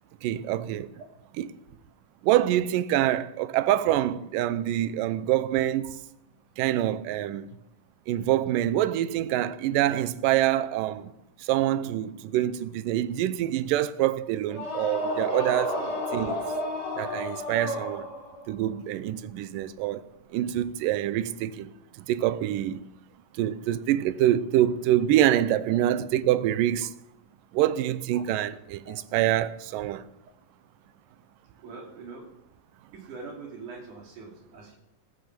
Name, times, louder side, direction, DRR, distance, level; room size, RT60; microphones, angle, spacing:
voice 1, 0.2-0.9 1.4-1.5 2.2-6.0 6.6-7.5 8.1-11.1 11.4-15.8 16.1-16.4 17.0-18.1 18.5-20.0 20.3-21.7 22.1-22.8 23.4-26.9 27.5-30.0, right 13 dB, 80° right, 2.3 m, -25 dB
sound 1, 14.5-18.5, left 1 dB, 50° left, 4.4 m, -31 dB
voice 2, 31.6-32.3 32.9-34.8, right 4 dB, 65° right, 4.2 m, -43 dB
14.5 x 14.0 x 6.0 m
omnidirectional pair, 4.0 m